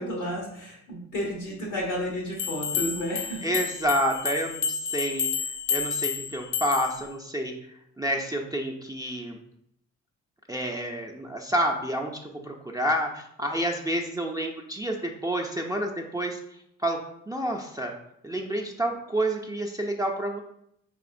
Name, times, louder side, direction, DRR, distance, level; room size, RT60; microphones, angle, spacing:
voice 1, 0.0-3.4, equal, 90° left, -3 dB, 0.9 m, -32 dB
sound 1, 2.4-7.0, left 6 dB, 45° left, 0.5 m, -30 dB
voice 2, 3.4-5.3 5.7-7.5 8.0-9.4 10.5-16.4 16.8-17.0 17.3-17.9 18.2-20.4, right 1 dB, 10° right, 0 dB, 0.4 m, -29 dB
4.0 x 3.0 x 2.5 m, 0.74 s
hypercardioid pair, 45°, 38 cm